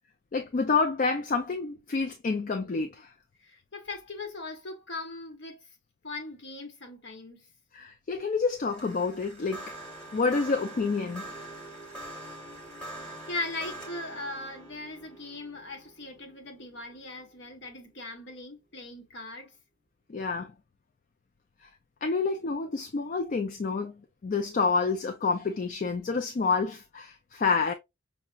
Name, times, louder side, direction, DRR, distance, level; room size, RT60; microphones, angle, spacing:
voice 1, 0.3-3.1 7.7-9.6 10.1-11.3 20.1-20.5 22.0-23.9 24.2-27.7, left 4 dB, 40° left, 0.3 m, -28 dB
voice 2, 3.4-5.6 6.0-7.5 12.9-19.5, left 2 dB, 55° left, 1.0 m, -39 dB
sound 1, 8.6-17.9, right 1 dB, 5° left, 1.2 m, -44 dB
5.6 x 2.1 x 2.3 m
head